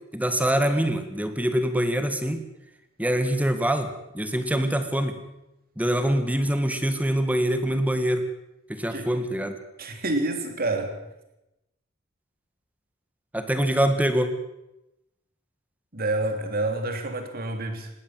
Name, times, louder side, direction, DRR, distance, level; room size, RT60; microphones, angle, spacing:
voice 1, 0.1-2.4 3.0-5.2 5.8-8.3 8.7-9.6 13.3-14.3, right 1 dB, 5° right, 8 dB, 1.8 m, -24 dB
voice 2, 9.8-11.0 15.9-17.9, right 2 dB, 50° right, 5 dB, 3.5 m, -28 dB
20.5 x 16.5 x 7.8 m, 0.91 s
head